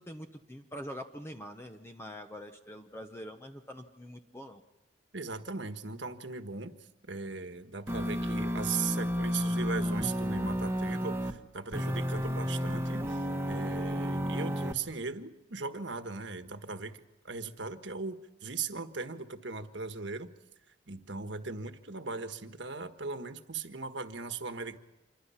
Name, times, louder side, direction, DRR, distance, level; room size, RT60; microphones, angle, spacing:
voice 1, 0.0-4.6, equal, 15° left, 5 dB, 0.9 m, -44 dB
voice 2, 5.1-6.7 7.1-20.3 20.9-24.8, right 4 dB, 65° right, 8 dB, 1.5 m, -38 dB
sound 1, 7.9-11.3 11.7-14.7, equal, 15° right, 1.4 m, -32 dB
27.0 x 23.0 x 5.8 m, 1.0 s
head